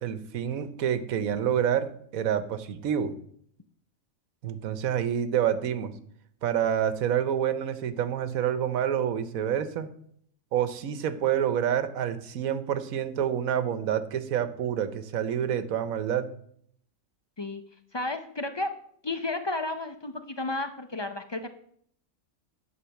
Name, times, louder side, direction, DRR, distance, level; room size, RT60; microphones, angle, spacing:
voice 1, 0.0-3.1 4.4-5.9 6.4-9.9 10.5-16.3, right 9 dB, 85° right, 12 dB, 1.2 m, -28 dB
voice 2, 17.9-18.7 19.0-21.5, left 2 dB, 40° left, 8 dB, 0.4 m, -32 dB
10.0 x 5.0 x 6.9 m, 0.65 s
omnidirectional pair, 1.4 m